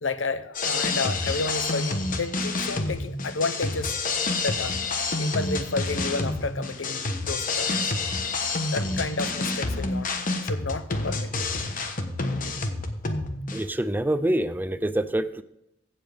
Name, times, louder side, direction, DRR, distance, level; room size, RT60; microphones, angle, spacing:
voice 1, 0.0-4.0 4.4-4.8 5.2-7.8 8.7-10.1 10.4-11.3, left 3 dB, 70° left, 0.8 m, -31 dB
sound 1, 0.5-13.6, left 3 dB, 45° left, 1.1 m, -28 dB
voice 2, 13.5-15.4, right 1 dB, 10° right, 0.5 m, -26 dB
15.5 x 7.4 x 3.5 m
head